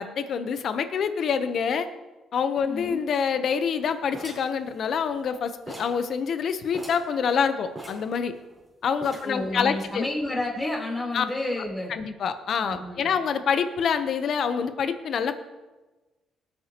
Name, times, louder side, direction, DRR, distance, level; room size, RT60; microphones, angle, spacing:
voice 1, 0.0-1.9 2.3-8.3 8.8-10.0 11.1-11.2 11.9-15.3, left 6 dB, 60° left, 10 dB, 0.8 m, -26 dB
voice 2, 2.6-3.1 9.2-11.9 12.5-13.0, left 2 dB, 15° left, -2 dB, 3.6 m, -30 dB
sound 1, 4.1-5.3 5.7-6.0 6.3-6.4 6.7-7.1 7.8-8.6 9.0-9.5, right 1 dB, 10° right, 4.2 m, -41 dB
18.5 x 8.8 x 3.0 m, 1.2 s
cardioid pair, 90°, 0 cm